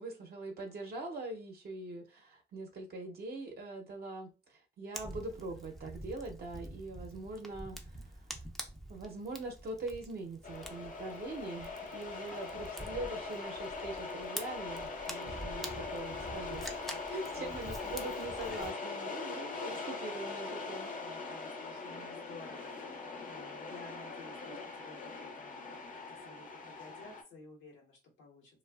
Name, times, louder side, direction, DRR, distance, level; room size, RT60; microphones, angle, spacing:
voice 1, 0.0-8.1 8.9-16.7 17.1-20.9, right 2 dB, 50° right, 0.7 m, -43 dB
Fire, 4.9-18.7, right 1 dB, ahead, 0.4 m, -47 dB
sound 1, 10.4-27.2, left 4 dB, 40° left, 0.6 m, -41 dB
voice 2, 16.9-17.6 21.0-28.6, left 2 dB, 85° left, 1.0 m, -54 dB
2.5 x 2.2 x 2.3 m
cardioid pair, 90°, 20 cm